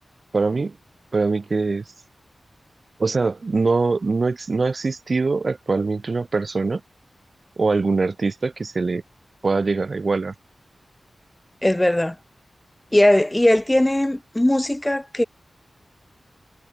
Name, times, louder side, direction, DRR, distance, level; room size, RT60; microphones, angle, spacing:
voice 1, 0.3-0.8 1.1-1.8 3.0-6.8 7.6-9.0 9.4-10.3, right 3 dB, 45° right, 5.5 m, -22 dB
voice 2, 11.6-12.2 12.9-15.2, left 1 dB, 10° left, 5.9 m, -19 dB
wide cardioid pair, 125°, 0 cm